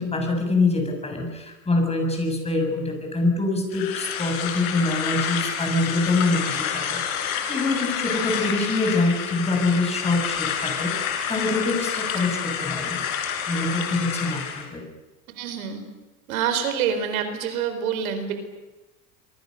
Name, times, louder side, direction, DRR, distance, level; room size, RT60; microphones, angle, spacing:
voice 1, 0.0-13.0 13.5-14.8, left 2 dB, 15° left, 3 dB, 7.6 m, -25 dB
sound 1, 3.7-14.7, left 8 dB, 80° left, 5.8 m, -29 dB
voice 2, 15.4-15.8 16.3-18.3, right 8 dB, 80° right, 8 dB, 4.4 m, -26 dB
27.0 x 23.5 x 6.7 m, 1.1 s
supercardioid pair, 105°, 41 cm